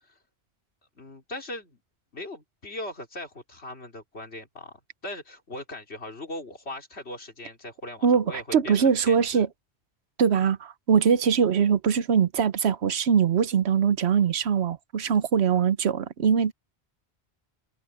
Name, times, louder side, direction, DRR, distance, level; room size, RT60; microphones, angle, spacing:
voice 1, 1.0-1.8 2.1-9.4, left 1 dB, 85° left, 3.8 m, -39 dB
voice 2, 8.0-9.5 10.2-16.5, right 7 dB, 90° right, 1.1 m, -22 dB
omnidirectional pair, 1.1 m